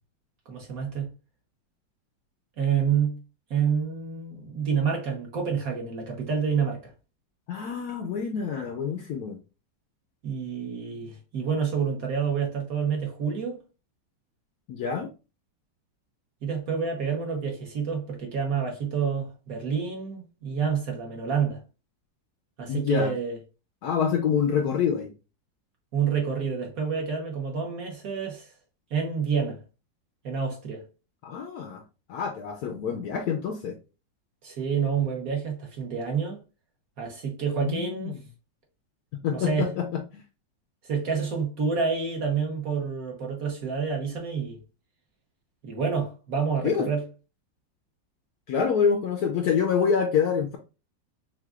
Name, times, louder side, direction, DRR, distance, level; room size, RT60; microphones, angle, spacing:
voice 1, 0.5-1.1 2.6-3.2 3.5-6.9 10.2-13.6 16.4-21.6 22.6-23.4 25.9-28.5 28.9-29.6 30.2-30.8 34.4-36.4 37.0-38.2 39.3-39.7 40.8-44.6 45.6-47.0, right 6 dB, 55° right, 1.3 m, -28 dB
voice 2, 7.5-9.4 14.7-15.1 22.7-23.1 23.8-25.1 31.2-31.8 32.1-33.8 37.6-38.2 39.2-40.2 46.6-46.9 48.5-50.6, left 7 dB, 75° left, 0.9 m, -26 dB
5.8 x 2.5 x 2.4 m
omnidirectional pair, 2.1 m